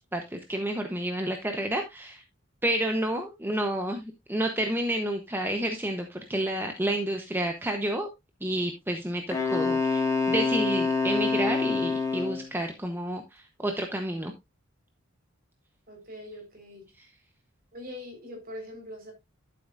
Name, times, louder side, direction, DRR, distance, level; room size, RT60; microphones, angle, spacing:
voice 1, 0.0-2.2 2.6-8.1 8.4-14.3, right 1 dB, 10° right, 0.9 m, -30 dB
Wind instrument woodwind instrument, 9.3-12.5, left 4 dB, 15° left, 1.8 m, -26 dB
voice 2, 15.9-16.8 17.7-19.1, left 1 dB, 45° right, 4.5 m, -42 dB
12.5 x 7.4 x 2.5 m
head